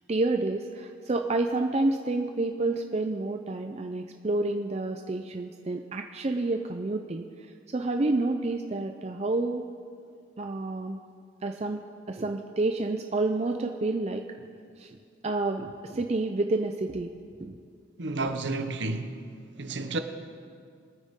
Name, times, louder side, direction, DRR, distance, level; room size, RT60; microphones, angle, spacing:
voice 1, 0.1-9.7 10.4-11.0 11.4-14.3 14.8-15.0 15.2-17.1 17.4-17.6, right 2 dB, 35° right, 0.4 m, -29 dB
voice 2, 18.0-19.3 19.6-20.0, right 2 dB, 60° right, 0.9 m, -31 dB
22.5 x 9.4 x 3.6 m
head